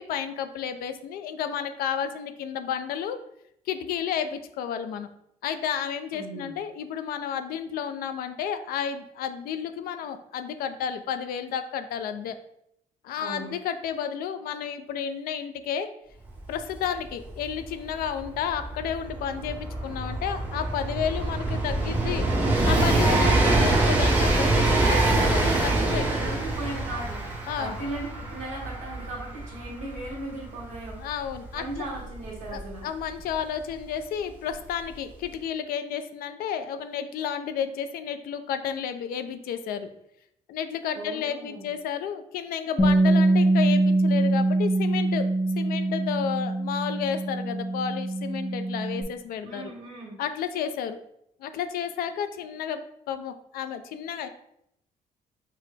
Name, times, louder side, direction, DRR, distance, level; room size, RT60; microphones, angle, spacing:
voice 1, 0.0-3.2 3.7-5.1 5.4-12.4 13.0-15.9 16.5-22.3 22.6-26.1 27.5-27.8 31.0-31.8 32.5-39.9 40.5-45.3 45.6-49.7 50.2-51.0 51.4-52.8 53.1-54.3, left 8 dB, 85° left, 10 dB, 0.4 m, -31 dB
voice 2, 6.1-6.6 13.2-13.5 25.4-31.0 31.5-32.8 40.9-41.7 49.4-50.2, right 2 dB, 55° right, -5 dB, 1.6 m, -37 dB
Train, 16.4-16.5 16.7-33.3 34.3-34.4, right 2 dB, 10° right, 0.8 m, -25 dB
Bass guitar, 42.8-49.0, right 2 dB, 20° left, 0.6 m, -23 dB
6.0 x 2.1 x 3.2 m, 0.75 s
cardioid pair, 145°, 15 cm